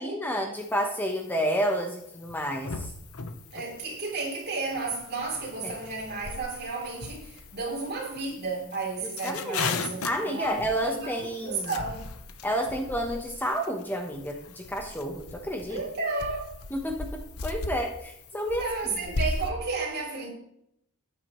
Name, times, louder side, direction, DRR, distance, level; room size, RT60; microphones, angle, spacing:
voice 1, 0.0-2.9 5.6-5.7 9.2-9.6 10.0-11.7 12.4-15.8 16.7-18.6, equal, 10° left, 1.0 m, -30 dB
sound 1, 0.6-19.5, left 3 dB, 90° left, 0.9 m, -38 dB
voice 2, 3.5-12.0 15.7-16.5 18.3-20.3, right 3 dB, 50° right, 3.3 m, -33 dB
13.0 x 9.5 x 3.1 m
head